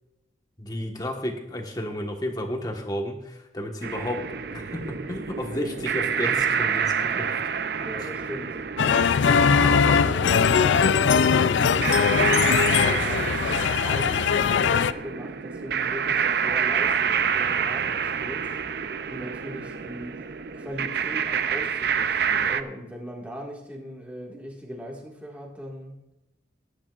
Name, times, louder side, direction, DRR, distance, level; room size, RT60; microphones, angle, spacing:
voice 1, 0.6-4.2 4.5-7.4 9.4-10.0, left 1 dB, 20° left, 2 dB, 1.4 m, -32 dB
sound 1, 3.8-22.6, right 7 dB, 60° right, 0.5 m, -28 dB
voice 2, 7.8-8.6 9.2-11.7 12.1-13.2 13.8-18.5 19.1-20.3 20.5-26.0, equal, 10° right, -2 dB, 1.9 m, -39 dB
sound 2, 8.8-14.9, left 6 dB, 75° left, 0.4 m, -20 dB
19.0 x 10.0 x 2.5 m, 0.94 s
head